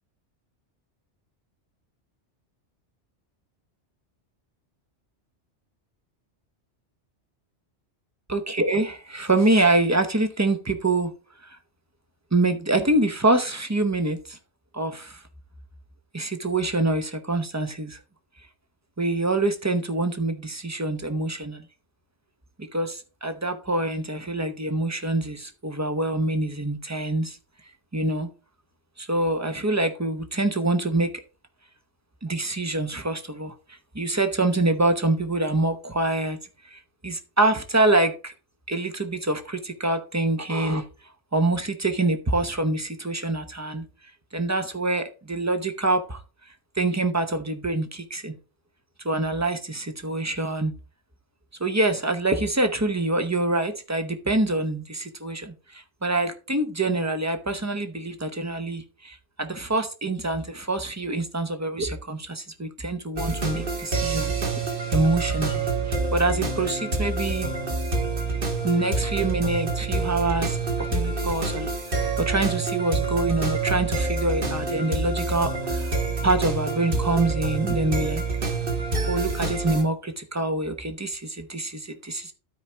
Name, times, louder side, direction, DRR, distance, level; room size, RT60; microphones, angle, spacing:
voice 1, 8.3-11.1 12.3-14.4 14.7-15.2 16.1-18.0 19.0-21.6 22.6-27.4 27.9-28.3 29.0-31.2 32.2-36.4 36.7-38.3 38.7-40.8 41.3-43.8 44.3-46.2 46.8-48.3 49.0-50.7 51.6-64.3 64.9-67.5 68.6-76.0 76.2-78.2 79.1-82.3, right 2 dB, 15° right, 0.7 m, -25 dB
sound 1, 63.2-79.8, right 3 dB, 50° right, 1.6 m, -27 dB
12.5 x 4.8 x 3.3 m
omnidirectional pair, 1.2 m